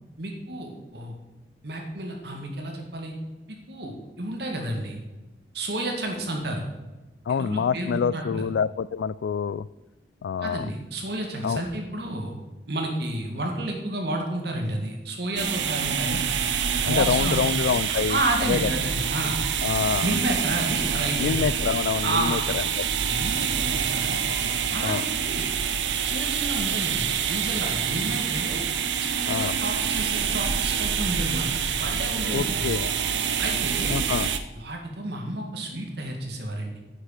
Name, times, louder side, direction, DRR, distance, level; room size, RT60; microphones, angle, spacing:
voice 1, 0.2-1.1 1.6-3.1 3.5-5.0 5.5-6.6 7.3-8.5 10.4-12.3 12.7-16.2 16.8-17.4 17.9-19.4 20.0-21.4 22.0-22.4 23.1-24.2 24.7-25.5 26.0-28.6 29.0-32.7 33.4-34.0 34.5-36.8, right 1 dB, 60° right, 2 dB, 2.1 m, -31 dB
voice 2, 7.3-9.7 10.2-10.7 11.4-11.6 16.8-18.2 18.5-18.7 19.6-20.2 21.2-22.6 24.8-25.0 29.3-29.6 32.3-32.9 33.9-34.3, left 6 dB, 75° left, 20 dB, 0.3 m, -26 dB
sound 1, 15.4-34.4, right 7 dB, 80° right, 0.8 m, -26 dB
9.6 x 6.5 x 6.6 m, 1.1 s
head